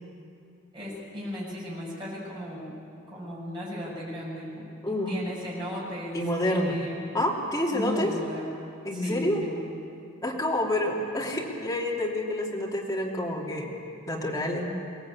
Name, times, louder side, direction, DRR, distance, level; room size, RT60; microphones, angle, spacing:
voice 1, 0.7-2.7 3.1-4.7 5.1-7.1 7.7-8.4 8.9-9.7, left 1 dB, 25° right, -6 dB, 7.4 m, -36 dB
voice 2, 6.1-6.8 7.1-8.1 8.8-9.4 10.2-13.7 14.1-14.7, left 1 dB, 15° left, -3 dB, 3.2 m, -28 dB
23.0 x 18.0 x 8.7 m, 2.5 s
head